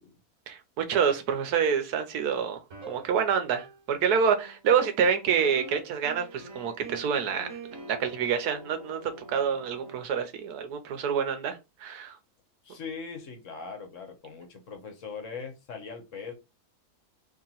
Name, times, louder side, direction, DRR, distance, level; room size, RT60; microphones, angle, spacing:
voice 1, 0.5-2.6 2.9-7.6 7.9-9.0 9.3-12.2, right 7 dB, 85° right, 1.2 m, -27 dB
sound 1, 2.7-3.9 4.1-10.0, right 3 dB, 55° right, 1.4 m, -45 dB
voice 2, 12.6-16.3, left 5 dB, 60° left, 1.1 m, -40 dB
3.0 x 2.9 x 3.9 m
omnidirectional pair, 1.6 m